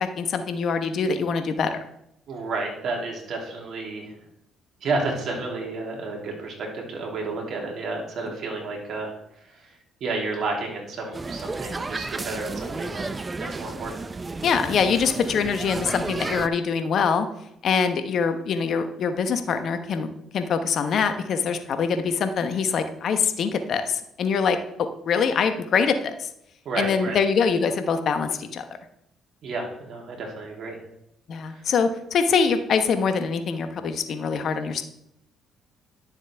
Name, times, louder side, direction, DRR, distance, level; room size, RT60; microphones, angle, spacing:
voice 1, 0.2-1.8 14.4-17.3 17.6-24.6 25.0-26.3 26.8-28.6 31.3-34.8, left 6 dB, 60° left, 8 dB, 1.0 m, -24 dB
voice 2, 2.3-4.1 4.8-9.1 9.5-9.7 10.0-13.1 13.4-14.0 26.6-27.2 29.4-30.8 31.5-31.6, right 3 dB, 65° right, -1 dB, 2.9 m, -31 dB
sound 1, 11.1-16.5, right 3 dB, 30° right, 0.6 m, -33 dB
11.5 x 7.1 x 3.4 m, 0.78 s
hypercardioid pair, 55°, 0 cm